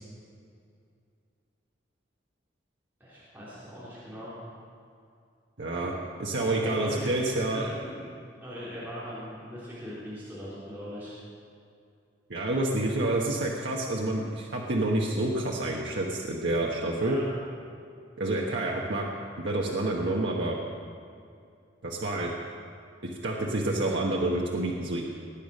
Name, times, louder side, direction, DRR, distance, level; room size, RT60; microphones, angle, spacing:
voice 1, 3.0-4.3 6.5-8.1 8.4-11.1 17.0-17.3, equal, 10° right, -11 dB, 3.7 m, -40 dB
voice 2, 5.6-7.7 12.3-17.2 18.2-19.0 19.4-20.6 21.8-22.3 23.0-25.0, right 2 dB, 80° right, -3 dB, 1.2 m, -28 dB
19.5 x 9.0 x 5.3 m, 2.4 s
head